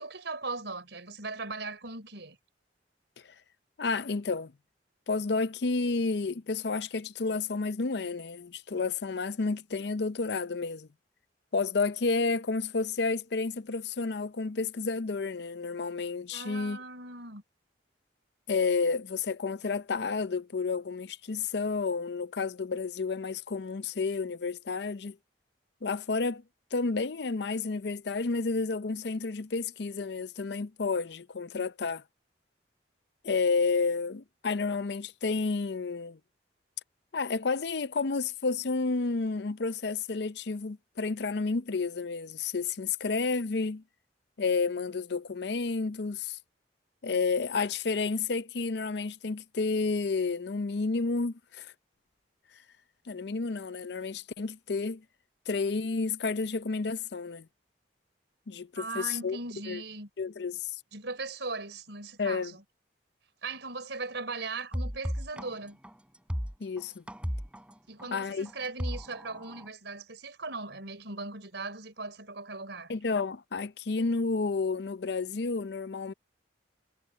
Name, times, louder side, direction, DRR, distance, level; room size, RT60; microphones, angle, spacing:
voice 1, 0.0-2.4 16.3-17.4 58.8-60.1 60.9-62.6 63.4-65.8 67.9-72.9, right 3 dB, 70° right, 4.5 m, -39 dB
voice 2, 3.8-4.5 5.1-10.9 11.5-16.8 18.5-25.2 25.8-26.4 26.7-32.0 33.2-36.2 37.1-43.8 44.4-46.4 47.0-51.7 53.1-55.0 55.5-57.5 58.5-59.4 59.7-59.8 60.2-60.7 62.2-62.5 66.6-67.0 68.1-68.5 72.9-76.1, left 4 dB, 60° left, 0.6 m, -31 dB
sound 1, 64.7-69.7, equal, 5° right, 4.8 m, -35 dB
head